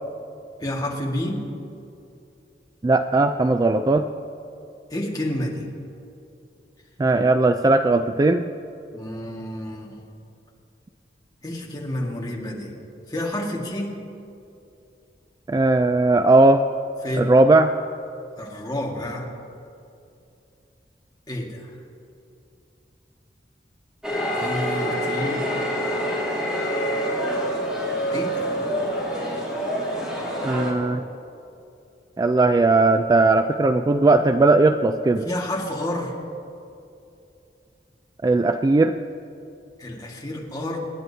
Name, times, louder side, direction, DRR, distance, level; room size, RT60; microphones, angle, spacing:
voice 1, 0.6-1.4 4.9-5.7 8.9-9.9 11.4-12.7 13.1-13.9 17.0-17.3 18.4-19.3 21.3-21.7 24.3-25.4 28.1-28.5 35.2-36.1 39.8-40.8, left 1 dB, 20° left, -2 dB, 1.7 m, -29 dB
voice 2, 2.8-4.1 7.0-8.5 15.5-16.6 17.2-17.7 30.4-31.0 32.2-35.3 38.2-39.0, right 2 dB, 20° right, 8 dB, 0.3 m, -18 dB
sound 1, 24.0-30.7, equal, 5° right, 3.1 m, -26 dB
26.5 x 10.5 x 2.8 m, 2.7 s
head